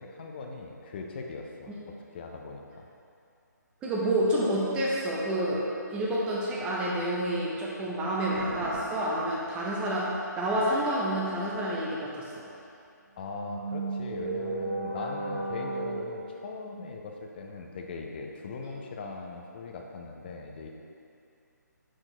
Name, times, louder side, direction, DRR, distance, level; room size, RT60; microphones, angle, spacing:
voice 1, 0.0-2.9 13.2-20.7, left 3 dB, 30° left, 2 dB, 0.5 m, -40 dB
voice 2, 3.8-5.6 5.9-12.4 18.6-18.7, right 1 dB, 10° right, -5 dB, 0.7 m, -29 dB
sound 1, 8.3-8.8 13.3-16.0, right 2 dB, 60° right, 0.9 m, -34 dB
6.2 x 4.4 x 3.9 m, 2.6 s
figure-of-eight pair, 145°, 10 cm